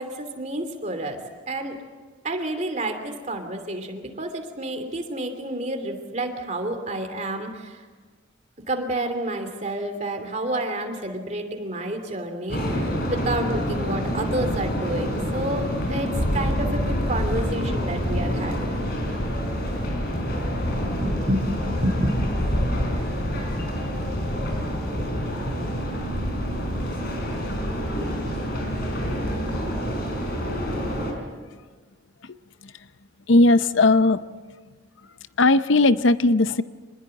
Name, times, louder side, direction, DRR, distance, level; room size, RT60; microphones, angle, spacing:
voice 1, 0.0-1.8 2.2-7.8 8.7-18.8 21.0-22.2, right 1 dB, 35° right, 6 dB, 2.9 m, -29 dB
sound 1, 12.5-31.1, equal, 50° left, 5.0 m, -27 dB
voice 2, 33.3-34.2 35.4-36.6, left 2 dB, 70° left, 13 dB, 0.7 m, -18 dB
25.5 x 20.5 x 7.8 m, 1.4 s
head